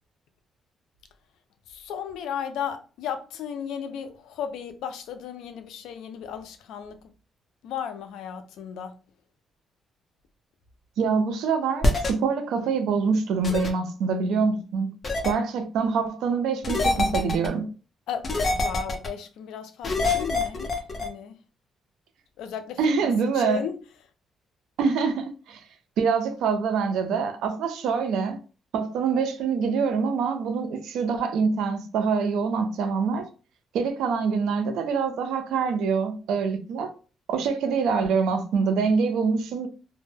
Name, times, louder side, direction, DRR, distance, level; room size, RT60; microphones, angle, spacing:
voice 1, 1.7-7.0 7.6-8.9 18.1-21.4 22.4-23.8, left 8 dB, 85° left, 0.4 m, -35 dB
voice 2, 11.0-14.9 15.2-17.7 22.8-23.6 24.8-25.6 26.0-28.4 28.7-33.3 33.7-36.9 37.3-39.7, right 5 dB, 85° right, 0.5 m, -25 dB
sound 1, 11.8-12.1 13.4-13.7 15.0-15.3 16.6-17.5 18.2-19.1 19.8-21.1, left 2 dB, 35° left, 0.6 m, -24 dB
2.1 x 2.0 x 3.2 m
cardioid pair, 90°, 0 cm